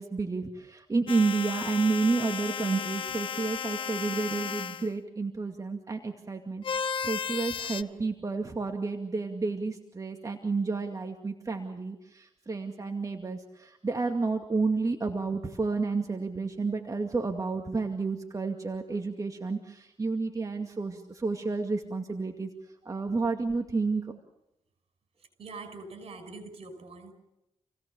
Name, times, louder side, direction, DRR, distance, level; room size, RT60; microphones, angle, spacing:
voice 1, 0.0-6.6 7.0-22.5 22.9-24.1, right 4 dB, 35° right, 3 dB, 2.3 m, -30 dB
sound 1, 1.1-4.9 6.6-7.8, left 7 dB, 55° left, 0.9 m, -34 dB
voice 2, 25.4-27.1, right 3 dB, 70° right, 6 dB, 5.8 m, -43 dB
28.5 x 17.5 x 7.0 m, 0.88 s
cardioid pair, 65°, 11 cm